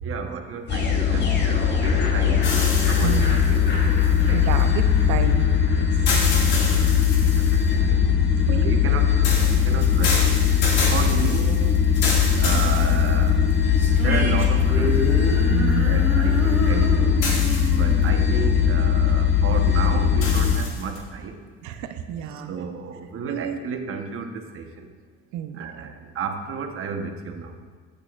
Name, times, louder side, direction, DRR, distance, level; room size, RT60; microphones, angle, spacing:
voice 1, 0.0-2.6 2.9-4.5 6.0-8.0 8.6-10.4 10.9-11.9 12.4-13.5 14.0-15.1 15.8-17.2 17.6-21.4 22.3-24.9 25.5-27.6, right 6 dB, 45° right, 4 dB, 1.1 m, -33 dB
sound 1, 0.7-20.6, left 7 dB, 35° left, 1.6 m, -20 dB
sound 2, 2.4-4.6 6.1-7.7 9.2-13.5 14.1-14.2 17.2-18.0 20.2-21.0, left 3 dB, 85° left, 2.2 m, -29 dB
voice 2, 3.0-3.4 4.3-5.9 8.5-8.7 11.0-11.1 15.5-16.0 17.6-18.1 21.6-22.5 23.3-23.6 25.3-25.9, right 9 dB, 75° right, 8 dB, 0.8 m, -31 dB
sound 3, 13.8-19.1, equal, 10° right, 2.5 m, -29 dB
15.0 x 6.6 x 2.5 m, 1.5 s
cardioid pair, 110°, 29 cm